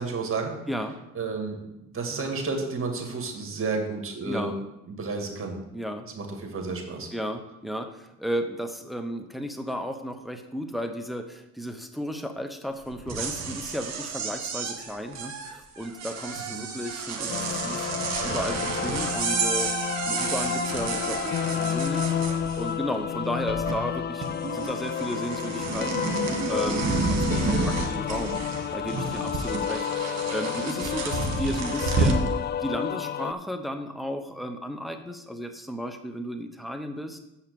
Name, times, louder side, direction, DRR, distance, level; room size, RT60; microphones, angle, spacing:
voice 1, 0.0-0.5 1.1-1.6 1.9-4.5 4.9-5.6 6.1-7.1 16.5-16.6, right 4 dB, 45° right, 3 dB, 2.2 m, -31 dB
voice 2, 0.7-1.0 4.2-4.5 5.7-6.1 7.1-17.9 18.2-19.7 20.1-22.1 22.6-26.1 26.5-28.4 28.7-32.3 32.6-37.2, equal, ahead, 6 dB, 0.9 m, -34 dB
sound 1, 12.9-22.9 23.2-24.0 24.2-32.3, right 4 dB, 60° right, 1.8 m, -30 dB
sound 2, 17.3-33.3, left 9 dB, 35° left, 0.4 m, -31 dB
7.4 x 5.7 x 7.0 m, 0.89 s
cardioid pair, 90°, 30 cm